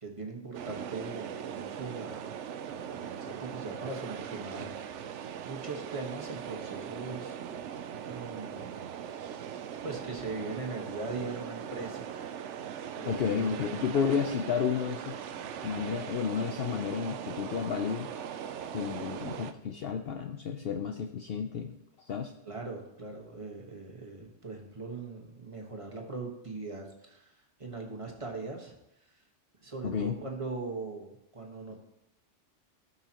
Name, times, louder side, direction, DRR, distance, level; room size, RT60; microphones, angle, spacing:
voice 1, 0.0-2.3 2.7-7.4 8.0-9.0 9.8-12.7 13.0-13.8 15.3-15.6 22.4-28.8 29.0-29.2 29.6-31.8, right 3 dB, 25° right, 0 dB, 1.4 m, -41 dB
sound 1, 0.5-19.5, right 8 dB, 75° right, 0.9 m, -40 dB
voice 2, 13.1-15.1 15.6-18.1 18.7-22.3 29.8-30.2, left 7 dB, 60° left, 5 dB, 0.7 m, -32 dB
17.0 x 5.7 x 2.9 m, 0.86 s
omnidirectional pair, 1.3 m